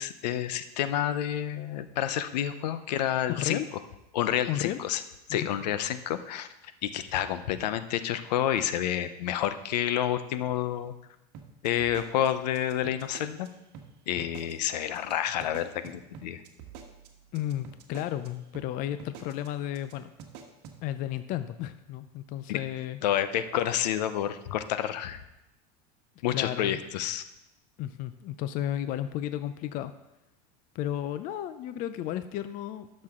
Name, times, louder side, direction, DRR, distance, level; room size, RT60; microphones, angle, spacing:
voice 1, 0.0-3.6 4.1-5.0 5.3-6.5 6.8-10.9 11.6-13.5 14.1-16.4 22.5-22.6 23.0-25.2 26.2-27.2, left 11 dB, 85° left, 11 dB, 0.8 m, -29 dB
voice 2, 3.3-3.7 4.5-4.8 5.3-5.5 17.3-20.1 20.8-23.0 26.3-26.8 27.8-29.9 30.7-33.0, left 12 dB, 40° left, 12 dB, 0.5 m, -33 dB
sound 1, 11.3-13.5 13.7-13.9 14.2-14.7 14.9-15.1 15.4-18.3 18.5-18.7 19.0-19.5 19.7-19.9 20.2-20.8, right 7 dB, 55° right, 1.5 m, -46 dB
12.0 x 6.5 x 3.7 m, 0.91 s
supercardioid pair, 130°, 21 cm